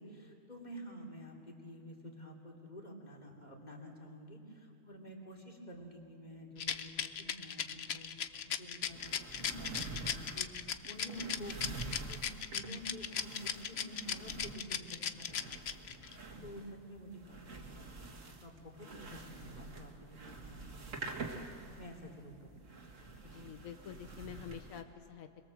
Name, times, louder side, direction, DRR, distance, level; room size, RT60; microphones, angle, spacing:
voice 1, 0.0-11.8 12.1-12.2 12.5-22.7, equal, 30° left, 0 dB, 3.2 m, -50 dB
Rattle, 6.6-16.1, left 8 dB, 55° left, 1.0 m, -37 dB
sound 1, 8.8-24.8, right 3 dB, 70° right, 2.2 m, -48 dB
voice 2, 16.4-16.7 23.2-25.4, left 9 dB, 85° left, 8 dB, 1.3 m, -48 dB
27.0 x 21.5 x 7.5 m, 2.5 s
omnidirectional pair, 1.4 m